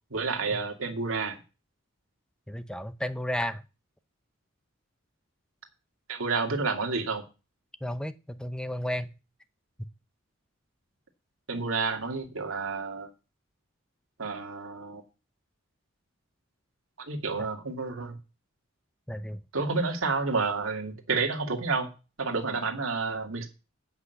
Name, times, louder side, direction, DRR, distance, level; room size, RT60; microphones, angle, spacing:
voice 1, 0.1-1.4 6.1-7.2 11.5-13.1 14.2-15.0 17.0-18.2 19.5-21.9 22.2-23.5, right 4 dB, 75° right, 2.1 m, -30 dB
voice 2, 2.5-3.6 7.8-9.1 19.1-19.4, left 1 dB, 5° left, 0.6 m, -33 dB
8.1 x 6.1 x 8.1 m
head